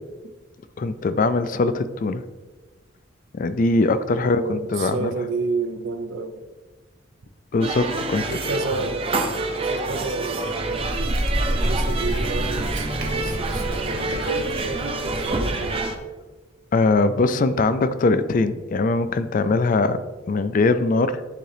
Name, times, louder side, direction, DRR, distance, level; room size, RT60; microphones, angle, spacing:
voice 1, 0.8-2.2 3.3-5.1 7.5-8.2 16.7-20.0 20.3-21.2, left 3 dB, 45° left, 0.4 m, -21 dB
voice 2, 4.2-6.5 8.1-10.9 11.6-15.9, right 3 dB, 80° right, 0.6 m, -30 dB
sound 1, 7.6-16.0, right 3 dB, 30° right, 0.6 m, -27 dB
Bird, 10.4-16.0, equal, 50° right, 1.1 m, -28 dB
10.5 x 3.7 x 3.4 m
head